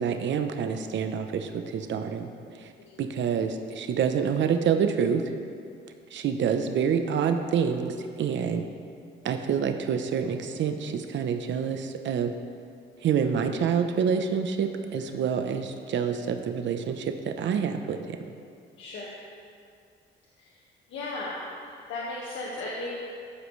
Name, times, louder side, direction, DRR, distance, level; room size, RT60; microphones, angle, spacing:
voice 1, 0.0-2.3 3.0-5.2 6.1-8.7 9.2-12.3 13.0-18.2, right 7 dB, 70° right, 6 dB, 0.9 m, -27 dB
voice 2, 15.0-15.3 18.8-19.1 20.4-20.5 20.9-21.4 21.9-22.9, left 2 dB, 75° left, -4 dB, 1.7 m, -36 dB
14.0 x 11.5 x 3.3 m, 2.3 s
cardioid pair, 90°, 20 cm